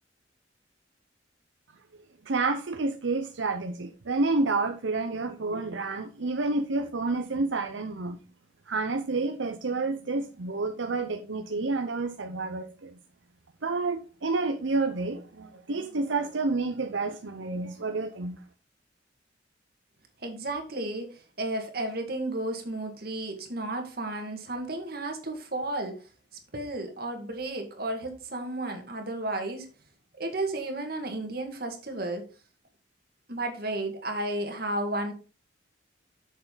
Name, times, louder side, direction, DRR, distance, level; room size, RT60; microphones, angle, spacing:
voice 1, 2.3-8.2 8.7-12.9 13.6-18.4, right 3 dB, 85° right, 0.8 m, -29 dB
voice 2, 20.2-26.0 26.5-29.7 30.2-32.2 33.3-35.1, right 2 dB, 55° right, 1.9 m, -33 dB
7.9 x 6.6 x 3.9 m
head